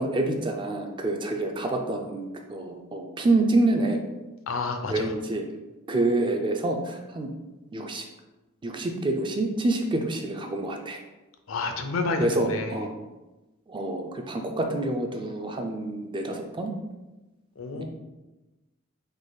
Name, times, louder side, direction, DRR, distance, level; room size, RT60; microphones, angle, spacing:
voice 1, 0.0-4.0 4.9-5.4 5.9-7.3 7.7-8.0 8.6-11.0 12.2-12.9 13.7-16.7 17.7-17.8, right 2 dB, 25° right, 4 dB, 0.4 m, -27 dB
voice 2, 4.5-5.1 11.5-12.8 17.6-17.8, left 3 dB, 70° left, 5 dB, 0.5 m, -29 dB
3.9 x 2.9 x 3.9 m, 1.1 s
head